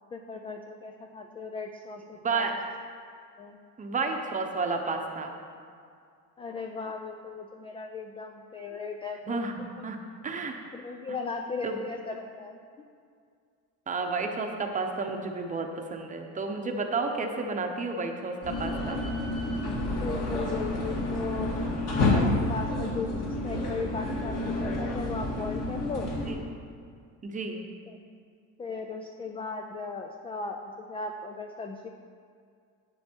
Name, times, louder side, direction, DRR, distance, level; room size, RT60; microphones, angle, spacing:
voice 1, 0.1-2.6 3.4-3.6 6.4-9.9 10.7-12.6 19.9-21.6 21.9-26.1 27.9-28.0 28.6-31.9, left 4 dB, 15° left, 3 dB, 0.3 m, -37 dB
voice 2, 2.2-2.6 3.8-5.3 9.3-10.0 10.2-10.6 11.6-11.8 13.9-19.0 26.2-26.4 27.2-27.6, right 4 dB, 20° right, 3 dB, 0.8 m, -31 dB
sound 1, 18.4-26.3, left 2 dB, 45° left, 2.0 m, -29 dB
9.5 x 8.9 x 4.5 m, 2.2 s
cardioid pair, 160°, 36 cm